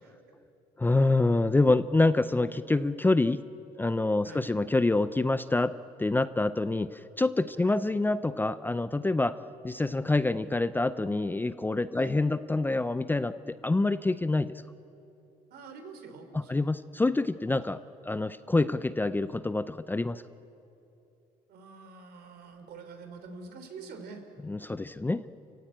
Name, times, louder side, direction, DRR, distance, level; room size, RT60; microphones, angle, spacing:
voice 1, 0.8-3.4 3.8-5.7 6.0-9.4 9.6-14.5 16.3-20.2 24.4-25.2, left 2 dB, 10° left, 13 dB, 0.5 m, -26 dB
voice 2, 15.5-16.7 17.6-17.7 21.5-24.2, right 4 dB, 70° right, 6 dB, 3.4 m, -46 dB
28.0 x 16.0 x 8.8 m, 2.9 s
cardioid pair, 110°, 17 cm